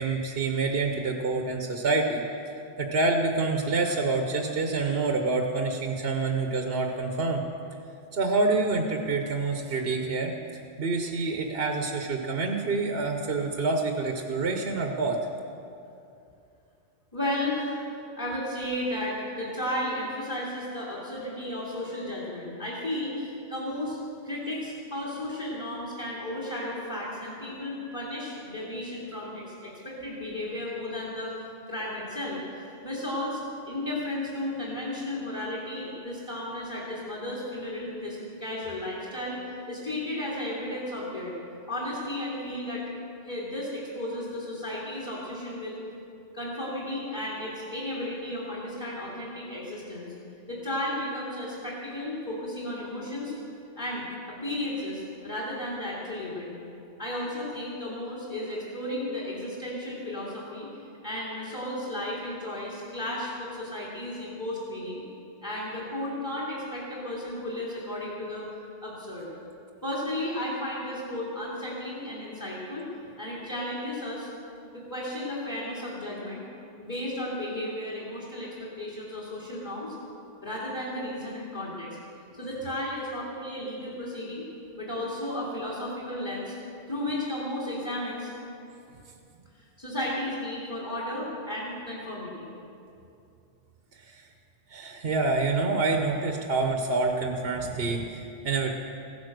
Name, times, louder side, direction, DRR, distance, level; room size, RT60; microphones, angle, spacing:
voice 1, 0.0-2.2 2.8-7.4 8.1-10.3 10.8-15.2 94.1-94.2 94.7-98.7, right 3 dB, 65° right, 3 dB, 1.2 m, -27 dB
voice 2, 17.1-24.0 24.2-31.4 31.7-33.4 33.7-39.4 39.7-41.3 41.7-42.9 43.2-45.7 46.3-50.1 50.5-53.3 53.8-56.5 57.0-60.7 61.0-65.0 65.4-68.5 68.8-69.3 69.8-72.9 73.2-74.3 74.7-76.4 76.8-79.9 80.4-82.0 82.4-84.4 84.8-86.5 86.9-88.3 89.8-92.5, left 1 dB, 15° left, -7 dB, 2.5 m, -34 dB
15.5 x 10.5 x 6.6 m, 2.6 s
omnidirectional pair, 1.1 m